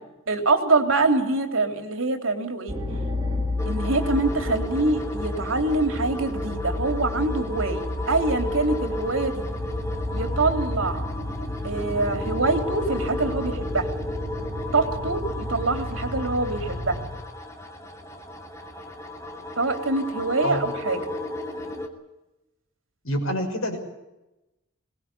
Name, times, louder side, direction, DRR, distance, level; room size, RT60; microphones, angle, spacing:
voice 1, 0.3-2.8 3.6-9.5 10.1-11.0 11.6-13.9 14.7-17.0 19.6-21.0, right 3 dB, 70° right, 5 dB, 3.5 m, -25 dB
sound 1, 2.7-17.1, left 1 dB, 20° right, 3.8 m, -31 dB
sound 2, 3.6-21.9, left 2 dB, 15° left, 2.5 m, -34 dB
voice 2, 23.0-23.8, equal, 85° left, 4 dB, 6.3 m, -26 dB
22.0 x 19.5 x 8.5 m, 0.99 s
head